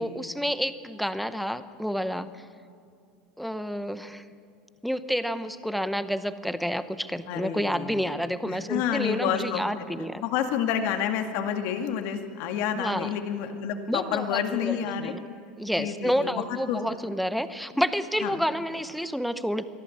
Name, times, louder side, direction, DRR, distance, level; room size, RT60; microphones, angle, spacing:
voice 1, 0.0-2.5 3.4-4.2 4.8-10.2 12.7-13.1 13.9-15.2 15.6-19.6, equal, ahead, 12 dB, 0.8 m, -29 dB
voice 2, 7.3-8.2 8.4-9.6 10.2-15.1 15.8-16.8 18.2-18.3, left 8 dB, 60° left, 6 dB, 2.0 m, -29 dB
23.0 x 13.5 x 8.7 m, 2.3 s
supercardioid pair, 115°, 5 cm